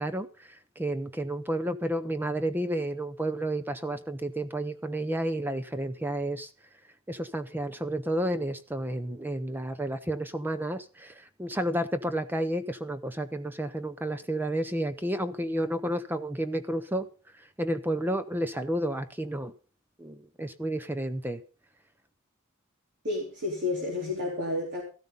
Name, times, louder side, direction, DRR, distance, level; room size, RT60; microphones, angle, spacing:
voice 1, 0.0-6.5 7.1-17.1 17.3-19.5 20.0-21.4, right 1 dB, 10° right, 0.7 m, -31 dB
voice 2, 23.0-24.8, left 2 dB, 55° right, 3.9 m, -30 dB
15.0 x 13.5 x 3.9 m
head